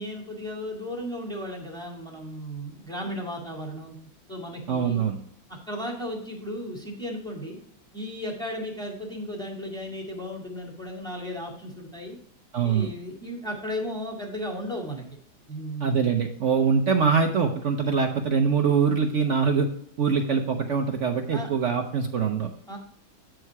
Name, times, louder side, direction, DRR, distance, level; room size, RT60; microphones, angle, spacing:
voice 1, 0.0-4.0 4.3-5.0 5.5-7.6 7.9-12.2 12.6-15.0 15.5-16.1 21.3-21.5 22.7-22.8, equal, ahead, -1 dB, 1.9 m, -35 dB
voice 2, 4.7-5.2 12.5-12.9 15.8-19.7 20.0-22.5, right 6 dB, 75° right, 4 dB, 0.6 m, -23 dB
8.9 x 4.9 x 4.6 m, 0.63 s
omnidirectional pair, 2.2 m